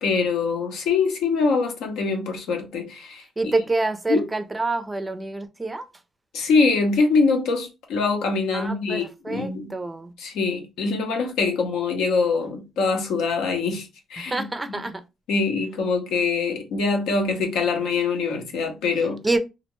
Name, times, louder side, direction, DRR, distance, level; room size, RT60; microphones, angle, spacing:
voice 1, 0.0-3.5 4.1-4.2 6.3-9.7 10.2-14.4 15.3-19.2, left 4 dB, 90° left, 0.7 m, -24 dB
voice 2, 3.4-5.9 8.5-10.1 14.3-15.0 19.2-19.4, right 2 dB, 20° right, 0.4 m, -27 dB
2.4 x 2.1 x 3.0 m
cardioid pair, 90°, 0 cm